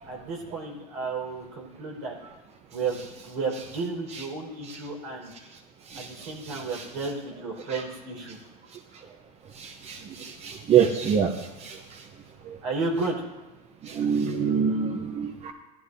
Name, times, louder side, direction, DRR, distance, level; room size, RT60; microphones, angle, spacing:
voice 1, 0.1-2.1 2.7-5.3 5.9-8.4 12.6-13.2, right 4 dB, 70° right, -2 dB, 4.8 m, -32 dB
voice 2, 5.9-6.8 7.7-7.8 9.6-11.3 11.6-11.8 12.5-12.6 13.8-15.5, right 7 dB, 30° right, 5 dB, 0.9 m, -26 dB
16.5 x 12.0 x 2.7 m, 1.1 s
hypercardioid pair, 110°, 21 cm